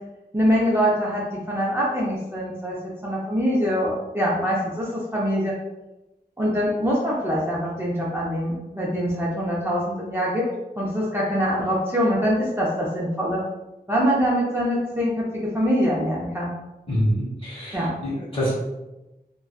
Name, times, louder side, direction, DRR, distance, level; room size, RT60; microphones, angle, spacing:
voice 1, 0.3-2.8 3.0-5.5 6.4-10.4 10.8-13.4 13.9-16.5 17.7-17.9, equal, 15° right, -6 dB, 0.5 m, -24 dB
voice 2, 16.9-18.5, equal, 35° left, -7 dB, 1.2 m, -26 dB
2.7 x 2.2 x 2.3 m, 0.99 s
wide cardioid pair, 75°, 17 cm